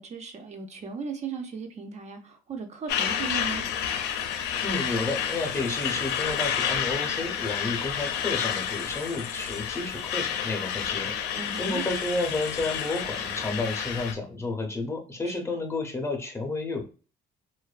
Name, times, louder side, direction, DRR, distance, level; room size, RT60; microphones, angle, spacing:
voice 1, 0.0-3.7 11.3-11.8 15.3-15.4, right 5 dB, 40° right, 0.5 m, -37 dB
Truck, 2.9-14.1, left 8 dB, 85° left, 0.4 m, -30 dB
voice 2, 4.6-16.8, left 2 dB, 15° left, 0.6 m, -31 dB
2.5 x 2.2 x 2.3 m
cardioid pair, 110°, 17 cm